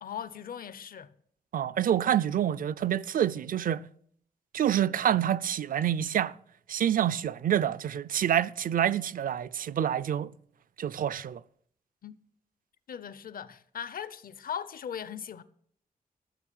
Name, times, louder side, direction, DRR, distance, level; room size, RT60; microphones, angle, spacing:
voice 1, 0.0-1.1 12.0-12.2 12.9-15.4, left 8 dB, 70° left, 0.8 m, -39 dB
voice 2, 1.5-3.8 4.5-6.3 6.7-10.3 10.8-11.4, right 10 dB, 65° right, 0.4 m, -27 dB
14.0 x 6.7 x 8.9 m
wide cardioid pair, 150°, 15 cm